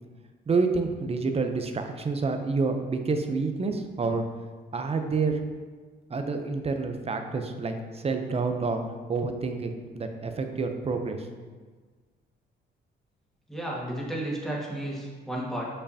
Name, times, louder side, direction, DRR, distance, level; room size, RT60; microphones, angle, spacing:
voice 1, 0.5-4.2 4.7-5.4 6.1-8.8 9.1-11.3, right 4 dB, 30° right, 6 dB, 0.7 m, -28 dB
voice 2, 13.5-15.7, right 1 dB, ahead, -4 dB, 1.8 m, -32 dB
6.3 x 5.5 x 2.8 m, 1.4 s
cardioid pair, 90°, 20 cm